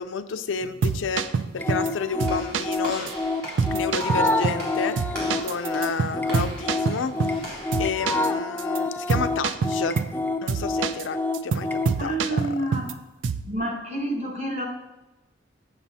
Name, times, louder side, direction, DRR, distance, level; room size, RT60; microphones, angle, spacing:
voice 1, 0.0-3.1 3.7-5.0 5.4-7.5 7.8-10.0 10.4-12.6, left 5 dB, 90° left, 10 dB, 0.5 m, -31 dB
sound 1, 0.6-1.9 2.2-2.8 3.1-3.2 3.6-4.7 5.0-7.5 7.7-8.3 8.6-8.8 9.1-10.2 10.5-11.1 11.3-12.9 13.2-13.5, right 5 dB, 80° right, 0.4 m, -27 dB
sound 2, 1.6-11.9, left 2 dB, 10° left, 0.3 m, -28 dB
Walk footsteps / Slam, 2.3-7.8, right 1 dB, 55° right, 2.6 m, -39 dB
voice 2, 12.0-13.0 13.5-14.7, right 1 dB, 35° right, 1 dB, 1.3 m, -29 dB
7.3 x 7.0 x 4.1 m, 1.1 s
head